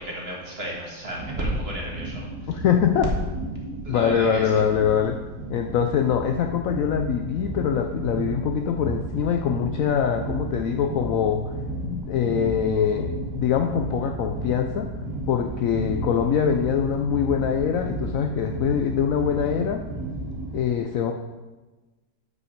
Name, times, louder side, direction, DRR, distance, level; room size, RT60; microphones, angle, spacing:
voice 1, 0.0-2.5 3.8-4.6, equal, 35° right, -2 dB, 1.8 m, -32 dB
sound 1, 1.1-20.6, right 2 dB, 65° right, 2.0 m, -33 dB
voice 2, 2.5-3.1 3.9-5.2 5.5-11.5 11.8-14.9 15.3-19.8 20.5-21.1, left 8 dB, 85° left, 4 dB, 0.7 m, -23 dB
8.3 x 5.5 x 5.1 m, 1.2 s
omnidirectional pair, 2.0 m